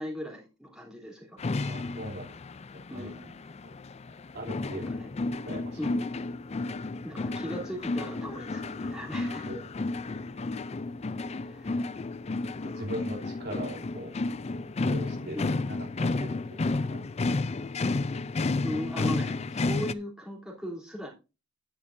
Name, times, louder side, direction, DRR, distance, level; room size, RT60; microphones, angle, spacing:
voice 1, 0.0-1.4 2.9-3.3 4.7-5.1 5.8-6.0 7.0-9.5 11.4-11.8 15.3-15.5 18.6-21.1, equal, 5° right, -2 dB, 3.6 m, -38 dB
sound 1, 1.4-19.9, left 3 dB, 30° left, 0.4 m, -32 dB
voice 2, 1.7-2.3 2.9-3.1 3.6-3.7 4.3-4.9 5.5-5.8 9.5-9.6 12.7-14.1 14.8-16.4 16.6-17.0, equal, 55° right, -2 dB, 3.3 m, -39 dB
11.5 x 10.5 x 2.7 m, 0.29 s
head